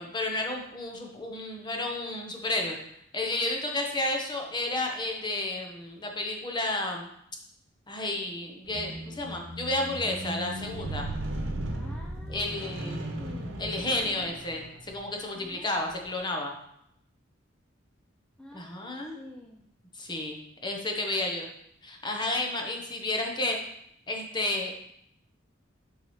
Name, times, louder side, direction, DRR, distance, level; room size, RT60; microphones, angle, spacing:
voice 1, 0.0-2.8 3.1-7.1 7.9-11.1 12.3-13.1 13.6-16.5 18.5-19.2 19.9-21.5 21.8-23.6 24.1-24.7, left 2 dB, 25° left, 2 dB, 1.0 m, -31 dB
Squeak, 8.7-15.0 15.8-15.9, right 1 dB, 75° right, 1.0 m, -36 dB
voice 2, 11.7-14.2 15.3-15.9 18.4-19.6, left 1 dB, 5° left, -2 dB, 0.5 m, -49 dB
7.3 x 5.7 x 3.2 m, 0.74 s
head